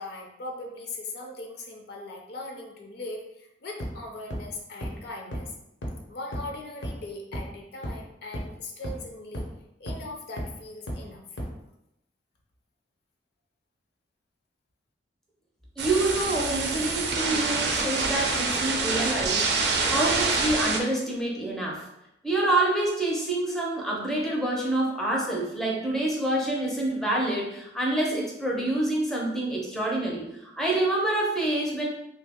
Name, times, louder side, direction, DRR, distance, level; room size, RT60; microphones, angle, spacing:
voice 1, 0.0-5.5 6.1-9.5 9.8-11.3, left 2 dB, 60° left, 1 dB, 0.5 m, -39 dB
sound 1, 3.8-3.9 4.3-4.4 4.8-4.9 5.3-5.4 5.8-5.9 6.3-6.4 6.8-6.9 7.3-7.4 7.8-7.9 8.3-8.4 8.8-8.9 9.3-9.4 9.9-10.0 10.4-10.5 10.9-11.0 11.4-11.5, equal, 85° left, 0.8 m, -32 dB
voice 2, 15.8-21.9 22.2-30.2 30.6-31.9, right 2 dB, ahead, -3 dB, 0.5 m, -27 dB
sound 2, 15.8-20.8, right 3 dB, 65° right, 0.4 m, -26 dB
3.1 x 2.0 x 3.5 m, 0.84 s
head